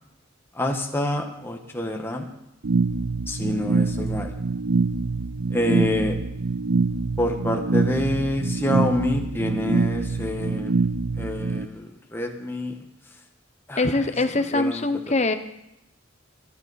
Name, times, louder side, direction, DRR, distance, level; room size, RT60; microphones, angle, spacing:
voice 1, 0.5-2.3 3.3-4.3 5.5-6.2 7.2-10.7 11.1-12.8 13.7-13.8 14.5-14.9, left 1 dB, 10° left, 2 dB, 1.3 m, -27 dB
sound 1, 2.6-11.6, right 3 dB, 60° right, 0.6 m, -25 dB
voice 2, 13.8-15.4, left 2 dB, 35° left, 9 dB, 0.9 m, -23 dB
24.0 x 9.5 x 4.1 m, 0.85 s
head